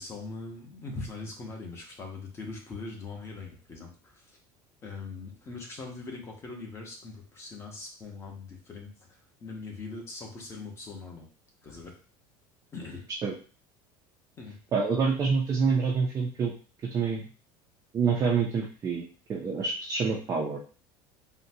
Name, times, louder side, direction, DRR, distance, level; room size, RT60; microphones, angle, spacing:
voice 1, 0.0-4.2 4.8-11.3 11.6-11.9 12.7-13.1 14.4-14.6, left 3 dB, 25° left, 1 dB, 0.9 m, -41 dB
voice 2, 14.7-16.5 16.9-17.2 17.9-20.6, right 5 dB, 25° right, -2 dB, 0.5 m, -27 dB
3.8 x 2.2 x 2.7 m, 0.37 s
cardioid pair, 150°, 11 cm